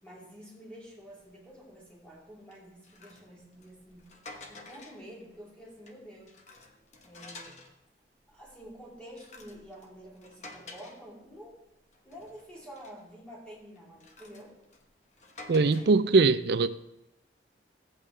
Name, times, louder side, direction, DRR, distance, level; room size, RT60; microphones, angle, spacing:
voice 1, 0.0-4.0 4.5-6.4 7.0-7.6 8.3-11.6 12.0-14.6, equal, 5° left, -5 dB, 3.0 m, -49 dB
sound 1, 1.1-1.3 1.7-2.0 2.5-5.2 5.6-7.8 8.3-11.6 11.9-13.1 13.8-16.1, left 2 dB, 40° left, 1.1 m, -51 dB
voice 2, 15.5-16.8, right 4 dB, 65° right, 14 dB, 0.5 m, -22 dB
16.5 x 8.4 x 3.3 m, 0.86 s
head